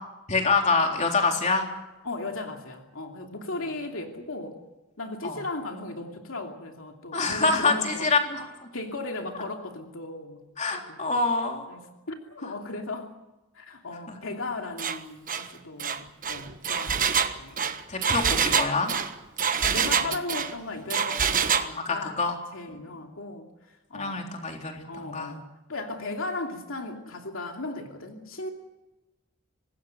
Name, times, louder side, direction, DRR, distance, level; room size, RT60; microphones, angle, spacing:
voice 1, 0.3-1.7 5.2-5.4 7.1-8.5 10.6-11.6 14.1-14.2 17.9-18.9 21.7-22.3 22.9-23.0 23.9-25.3, left 3 dB, 35° left, 2 dB, 3.7 m, -26 dB
voice 2, 2.0-4.6 5.0-8.1 8.7-10.4 10.7-11.0 11.7-13.1 13.5-17.6 19.6-22.2 22.5-23.5 23.9-24.2 24.8-28.5, left 2 dB, 70° left, 2 dB, 2.8 m, -36 dB
Engine, 14.8-15.0 15.3-15.5 15.8-20.5 20.9-21.7, right 7 dB, 40° right, 1.3 m, -26 dB
25.5 x 20.0 x 6.7 m, 1.0 s
head